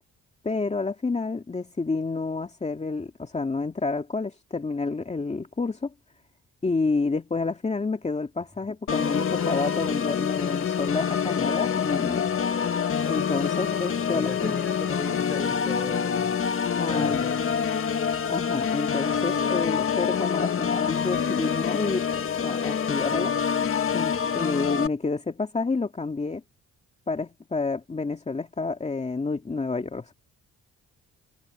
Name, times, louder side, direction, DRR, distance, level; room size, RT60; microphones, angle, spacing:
voice 1, 0.4-5.9 6.6-12.3 13.1-14.6 16.8-17.2 18.3-22.1 22.4-23.3 23.9-26.4 27.1-30.1, left 3 dB, 20° left, 2.2 m, -29 dB
Organ, 8.9-24.9, left 7 dB, 45° left, 1.8 m, -26 dB
voice 2, 14.1-16.3 16.9-17.6, equal, ahead, 3.8 m, -38 dB
cardioid pair, 90°, 30 cm